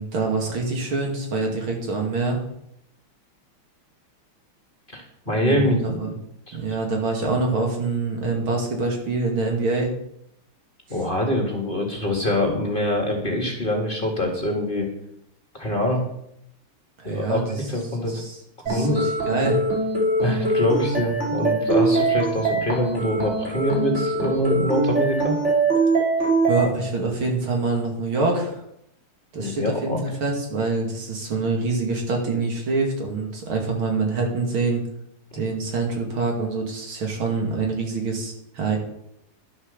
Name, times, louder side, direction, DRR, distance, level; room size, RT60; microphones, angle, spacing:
voice 1, 0.0-2.4 5.3-6.1 6.5-9.9 17.0-17.6 18.0-18.4 18.6-19.6 26.5-28.6 29.3-34.8 35.3-38.8, right 3 dB, 70° right, 1 dB, 3.2 m, -25 dB
voice 2, 4.9-6.1 6.5-6.6 10.9-14.9 15.5-16.0 17.0-18.2 18.7-19.1 20.2-25.4 29.4-30.0, left 1 dB, 25° left, 1 dB, 1.9 m, -24 dB
sound 1, 18.7-26.7, right 2 dB, 30° right, 3.4 m, -23 dB
11.5 x 7.8 x 6.7 m, 0.77 s
omnidirectional pair, 2.4 m